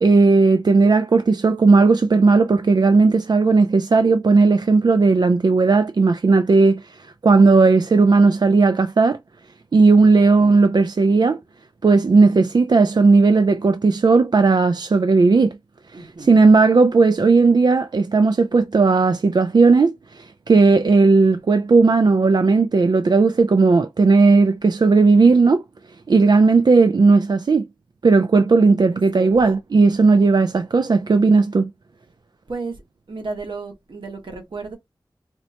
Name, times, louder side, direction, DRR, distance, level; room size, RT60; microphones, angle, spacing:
voice 1, 0.0-9.2 9.7-11.4 11.8-15.6 15.9-25.6 26.1-27.7 28.0-31.7, right 4 dB, 55° right, 0.3 m, -15 dB
voice 2, 15.9-16.7 28.9-29.4 32.5-32.8 33.1-34.8, right 3 dB, 75° right, 1.2 m, -34 dB
4.2 x 2.1 x 2.8 m
wide cardioid pair, 65°, 8 cm